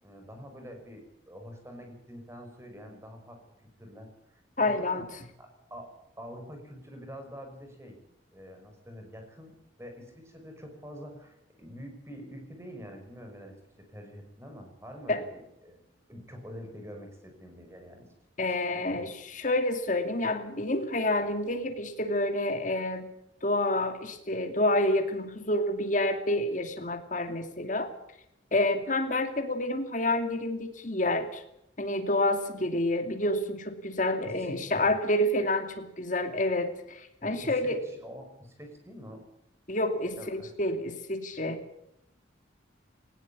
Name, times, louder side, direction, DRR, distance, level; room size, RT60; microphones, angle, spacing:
voice 1, 0.0-3.4 3.8-5.1 5.4-8.0 8.3-15.8 16.1-18.1 18.5-19.0 34.2-34.9 37.2-39.3 40.1-40.5, equal, 15° right, 4 dB, 5.5 m, -46 dB
voice 2, 4.6-5.0 15.1-15.2 18.4-23.1 23.4-27.9 28.5-31.4 31.8-37.8 39.7-41.6, left 1 dB, 40° left, 5 dB, 2.5 m, -28 dB
19.5 x 16.5 x 8.5 m, 0.81 s
head